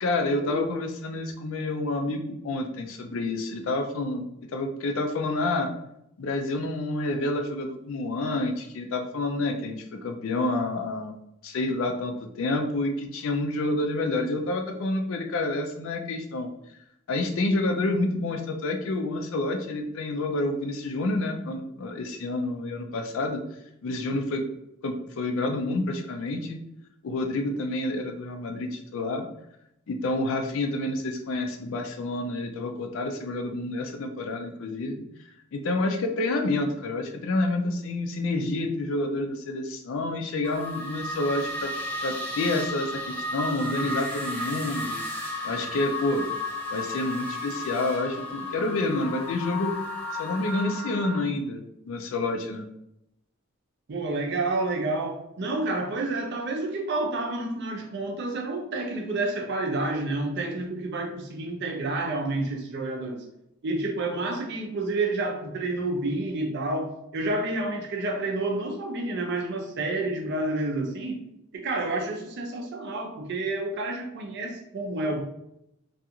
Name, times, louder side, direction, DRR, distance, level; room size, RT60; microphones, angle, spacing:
voice 1, 0.0-4.2 4.5-5.7 6.2-11.2 11.4-16.5 17.1-23.4 23.8-24.4 24.8-26.6 27.0-29.2 29.9-35.0 35.5-41.7 42.0-45.0 45.4-46.2 46.7-49.7 50.2-52.6, left 2 dB, 65° left, 5 dB, 0.4 m, -28 dB
sound 1, 40.4-51.2, left 1 dB, 10° left, 0.5 m, -33 dB
voice 2, 53.9-63.2 63.6-71.2 71.5-75.2, right 2 dB, 55° right, 2 dB, 0.5 m, -29 dB
2.4 x 2.3 x 2.8 m, 0.82 s
head